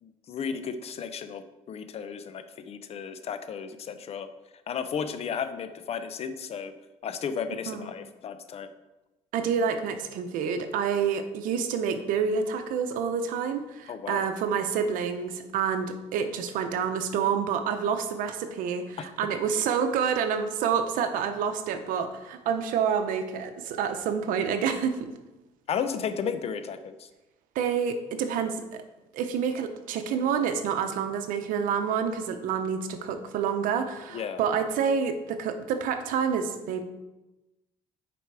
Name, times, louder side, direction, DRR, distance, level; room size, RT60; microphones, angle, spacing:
voice 1, 0.0-4.3 4.7-6.7 7.0-8.7 13.9-14.3 25.7-27.1 34.1-34.4, left 7 dB, 50° left, 10 dB, 0.8 m, -34 dB
voice 2, 9.3-25.1 27.5-28.8 29.1-36.8, right 7 dB, 80° right, 8 dB, 0.9 m, -28 dB
7.9 x 5.2 x 4.8 m, 1.0 s
cardioid pair, 110°, 14 cm